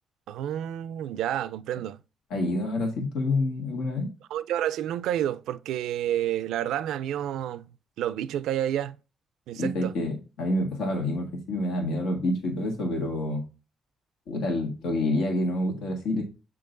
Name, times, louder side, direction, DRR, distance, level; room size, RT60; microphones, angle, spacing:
voice 1, 0.3-2.0 4.3-7.7 8.0-9.0 9.5-9.9, right 11 dB, 85° right, 0.4 m, -29 dB
voice 2, 2.3-4.1 9.6-13.4 14.3-16.2, left 1 dB, 90° left, 1.6 m, -28 dB
7.6 x 3.7 x 3.9 m
cardioid pair, 90°, 0 cm